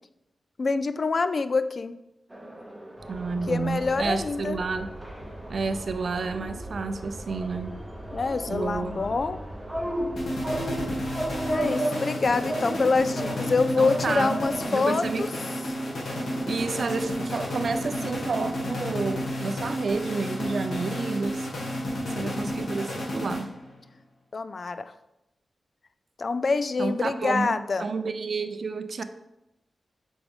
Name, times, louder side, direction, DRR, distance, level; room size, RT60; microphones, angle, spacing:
voice 1, 0.6-1.9 3.5-4.6 8.1-9.4 11.5-15.3 21.8-22.3 24.3-24.9 26.2-27.9, left 4 dB, 40° left, 12 dB, 0.3 m, -26 dB
sound 1, 2.3-18.1, right 1 dB, 10° right, 0.8 m, -36 dB
sound 2, 3.0-11.6, right 1 dB, 10° left, 2.0 m, -42 dB
voice 2, 3.1-4.9 5.5-7.8 8.5-9.0 13.8-14.4 14.7-15.3 16.5-21.5 22.1-23.5 26.8-29.0, right 4 dB, 50° right, 10 dB, 0.5 m, -30 dB
sound 3, 10.2-23.8, equal, 75° left, 2.0 m, -32 dB
8.0 x 5.2 x 3.6 m, 0.90 s
wide cardioid pair, 180°, 0 cm